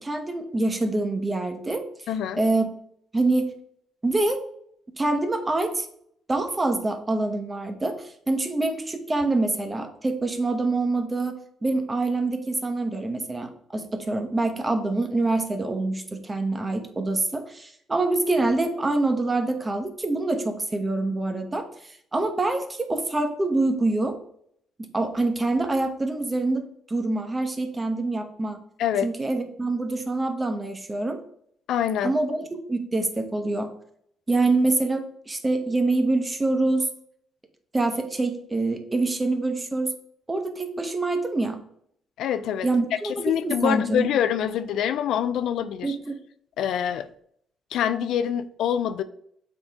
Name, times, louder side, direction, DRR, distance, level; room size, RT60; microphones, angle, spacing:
voice 1, 0.0-1.8 2.4-2.7 3.1-3.5 4.0-4.4 5.0-5.9 6.3-21.7 22.1-24.2 24.8-28.6 29.0-31.2 32.0-33.7 34.3-36.9 37.7-39.9 40.3-41.6 42.6-44.1 45.8-46.1, right 2 dB, 20° right, 6 dB, 1.0 m, -25 dB
voice 2, 2.1-2.4 28.8-29.1 31.7-32.2 42.2-42.7 43.0-46.0 46.6-47.1 47.7-49.0, left 9 dB, 80° left, 12 dB, 0.4 m, -25 dB
7.1 x 4.0 x 3.5 m, 0.68 s
cardioid pair, 90°, 0 cm